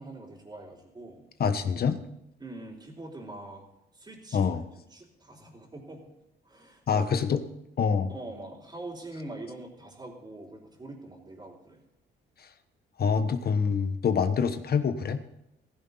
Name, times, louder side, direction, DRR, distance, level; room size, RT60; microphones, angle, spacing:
voice 1, 0.0-1.3 2.4-3.6 3.9-4.5 4.9-6.1 6.4-7.1 8.1-11.8, right 2 dB, 25° right, -6 dB, 3.8 m, -43 dB
voice 2, 1.4-2.0 4.3-4.6 6.9-7.4 7.8-8.1 12.4-12.5 13.0-15.2, left 6 dB, 50° left, 9 dB, 1.3 m, -26 dB
16.0 x 15.5 x 4.1 m, 0.83 s
cardioid pair, 90°, 20 cm